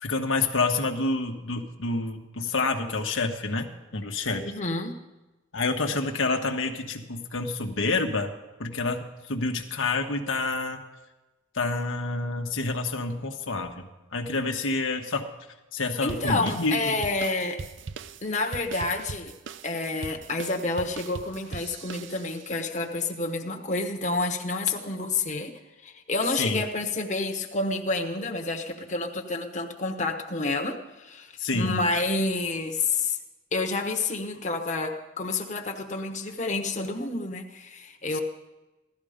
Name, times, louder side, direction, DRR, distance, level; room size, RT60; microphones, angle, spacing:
voice 1, 0.0-4.5 5.5-8.3 8.6-10.8 11.5-15.3 15.7-17.0 26.4-26.6 31.4-31.8 38.1-38.2, left 3 dB, 80° left, 4 dB, 1.2 m, -28 dB
voice 2, 4.4-4.9 16.0-17.6 18.2-19.3 19.6-25.5 25.8-33.2 33.5-38.2, left 3 dB, 40° left, 3 dB, 1.2 m, -29 dB
sound 1, 16.1-22.6, right 5 dB, 70° right, 0.6 m, -41 dB
16.0 x 13.0 x 5.1 m, 1.1 s
head